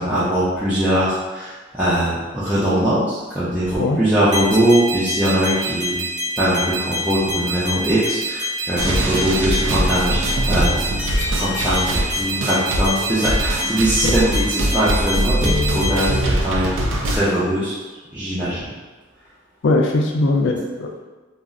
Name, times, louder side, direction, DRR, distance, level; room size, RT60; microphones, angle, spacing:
voice 1, 0.0-6.0 6.4-10.8 11.3-17.7 18.1-18.7, equal, 5° right, -11 dB, 0.4 m, -21 dB
sound 1, 4.3-16.2, equal, 35° right, 0.7 m, -27 dB
sound 2, 8.8-17.2, right 1 dB, 75° right, 0.4 m, -22 dB
voice 2, 19.6-21.0, left 2 dB, 65° left, 2 dB, 0.4 m, -19 dB
2.3 x 2.0 x 3.6 m, 1.3 s
head